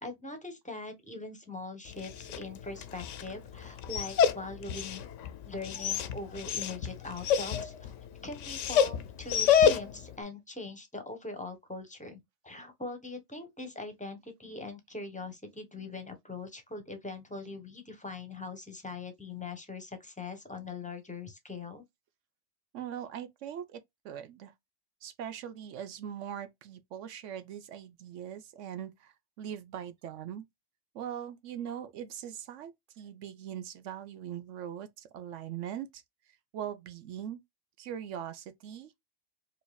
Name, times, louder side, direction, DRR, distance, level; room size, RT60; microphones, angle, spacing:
voice 1, 0.0-5.0 5.4-7.9 8.2-21.8, left 3 dB, 5° left, 0.8 m, -42 dB
Dog, 1.9-10.1, left 8 dB, 80° left, 0.9 m, -29 dB
voice 2, 22.7-24.5 25.0-30.4 30.9-36.0 36.5-37.4 37.8-38.9, right 9 dB, 75° right, 1.0 m, -41 dB
4.8 x 2.6 x 2.2 m
omnidirectional pair, 1.3 m